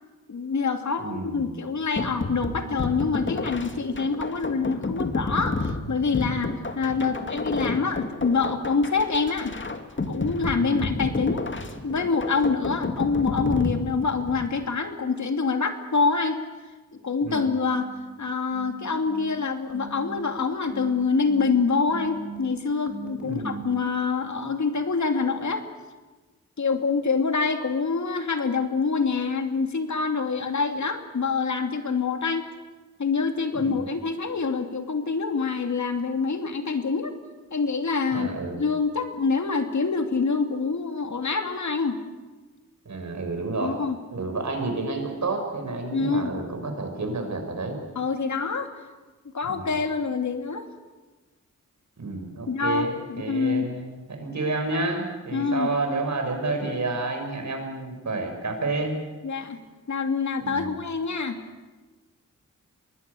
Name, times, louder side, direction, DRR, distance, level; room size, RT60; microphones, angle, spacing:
voice 1, 0.3-9.5 10.1-11.5 11.8-16.4 17.0-17.9 18.2-25.6 26.6-32.5 33.0-37.1 37.5-38.3 38.5-42.0 43.6-44.0 45.9-46.3 48.0-48.7 49.3-50.7 52.5-53.7 55.3-55.7 59.2-59.6 59.9-61.4, left 4 dB, 65° left, 6 dB, 2.7 m, -26 dB
voice 2, 1.0-1.6 10.6-10.8 17.2-17.5 23.2-23.6 33.5-33.8 38.1-38.6 42.9-43.8 44.1-47.8 49.4-49.7 52.0-58.9 60.4-60.8, right 3 dB, 65° right, 4 dB, 6.0 m, -30 dB
sound 1, 2.0-14.5, left 3 dB, 40° left, 2.1 m, -31 dB
sound 2, 17.8-23.9, right 2 dB, 5° right, 5.7 m, -39 dB
24.0 x 19.5 x 8.4 m, 1.3 s
cardioid pair, 65°, 31 cm